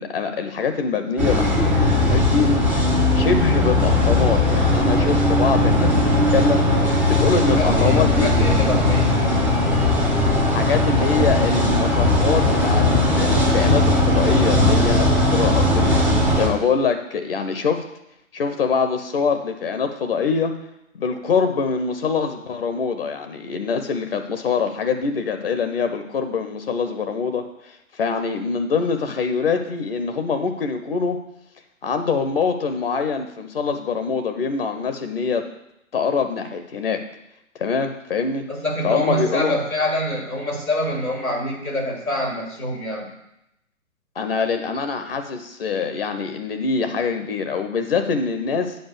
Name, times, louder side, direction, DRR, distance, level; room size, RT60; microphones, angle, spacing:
voice 1, 0.0-2.6 3.1-8.5 10.5-17.8 18.3-20.5 20.9-31.2 31.8-35.4 35.9-37.0 37.6-38.5 38.8-39.5 44.2-48.8, left 5 dB, 45° left, 7 dB, 0.8 m, -24 dB
sound 1, 1.2-16.5, left 1 dB, ahead, 0.5 m, -18 dB
voice 2, 7.6-9.2 38.5-43.1, left 1 dB, 90° left, -1 dB, 3.5 m, -26 dB
7.9 x 5.1 x 6.9 m, 0.84 s
figure-of-eight pair, 130°, 41 cm